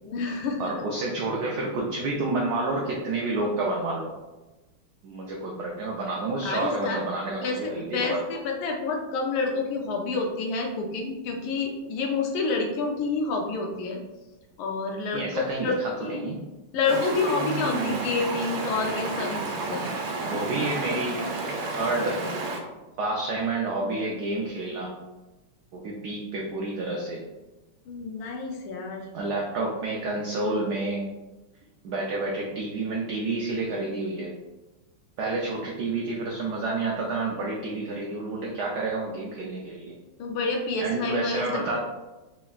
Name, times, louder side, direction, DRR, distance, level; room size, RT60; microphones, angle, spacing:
voice 1, 0.0-0.7 6.4-7.0 7.4-14.0 14.6-15.7 16.0-16.2 16.7-19.8 27.9-29.1 40.2-41.5, left 4 dB, 80° left, 2 dB, 1.5 m, -28 dB
voice 2, 0.6-4.1 5.0-8.2 15.1-16.4 20.2-21.2 21.7-22.2 23.0-24.9 25.7-27.2 29.1-31.1 31.8-34.3 35.2-39.9 40.8-41.8, right 2 dB, 90° right, -1 dB, 0.8 m, -29 dB
Stream, 16.9-22.6, right 2 dB, 75° right, 1.2 m, -31 dB
4.5 x 3.0 x 2.4 m, 1.1 s
omnidirectional pair, 2.3 m